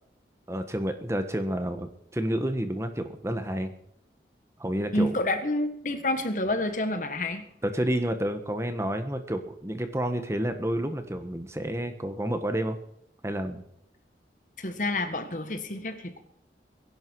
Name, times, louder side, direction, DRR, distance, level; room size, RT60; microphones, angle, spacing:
voice 1, 0.5-3.7 4.6-5.1 7.6-12.8 13.2-13.6, right 1 dB, 15° right, 8 dB, 1.3 m, -30 dB
voice 2, 4.9-7.4 14.6-16.2, left 1 dB, 45° left, 8 dB, 1.7 m, -28 dB
22.0 x 11.5 x 4.7 m, 0.72 s
head